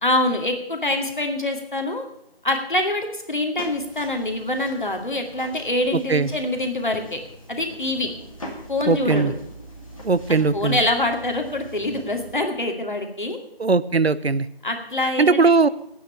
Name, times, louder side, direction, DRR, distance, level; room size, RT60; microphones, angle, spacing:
voice 1, 0.0-2.0 2.4-7.2 7.5-8.1 8.7-9.3 10.5-13.4 14.6-15.5, left 1 dB, 50° left, 4 dB, 2.4 m, -25 dB
sound 1, 3.6-12.4, equal, 35° left, 2.4 m, -41 dB
voice 2, 8.9-9.3 10.0-10.8 13.6-14.5 15.2-15.7, right 4 dB, 85° right, 16 dB, 0.8 m, -19 dB
11.5 x 9.4 x 8.6 m, 0.77 s
figure-of-eight pair, 175°, 31 cm